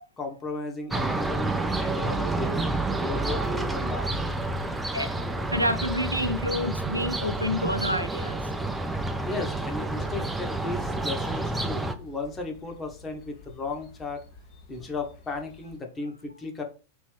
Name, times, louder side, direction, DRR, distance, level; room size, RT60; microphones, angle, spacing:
voice 1, 0.2-2.6 3.0-4.1 9.2-14.2 14.7-16.6, left 3 dB, 20° left, 1.2 m, -35 dB
sound 1, 0.9-11.9, right 2 dB, 10° right, 0.5 m, -29 dB
voice 2, 4.9-8.4, left 1 dB, 85° right, 0.4 m, -29 dB
sound 2, 9.1-15.8, left 3 dB, 40° left, 0.9 m, -50 dB
5.1 x 3.1 x 3.4 m
figure-of-eight pair, 90°, 0 cm